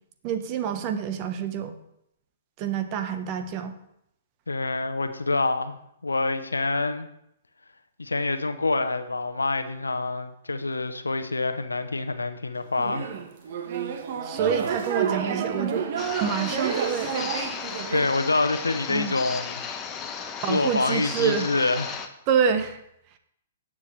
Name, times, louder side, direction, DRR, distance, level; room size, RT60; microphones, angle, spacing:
voice 1, 0.2-1.8 2.6-3.7 14.2-15.9 16.2-17.2 18.9-19.1 20.4-21.7 22.3-22.8, right 7 dB, 40° right, 8 dB, 1.1 m, -27 dB
voice 2, 4.5-7.1 8.0-13.1 17.9-19.6 20.5-22.1, left 3 dB, 90° left, 10 dB, 0.9 m, -26 dB
sound 1, 12.8-18.1, right 7 dB, 55° right, 1.3 m, -29 dB
sound 2, 16.0-22.1, left 6 dB, 20° left, 1.1 m, -35 dB
18.0 x 7.3 x 3.2 m, 0.78 s
hypercardioid pair, 120°, 0 cm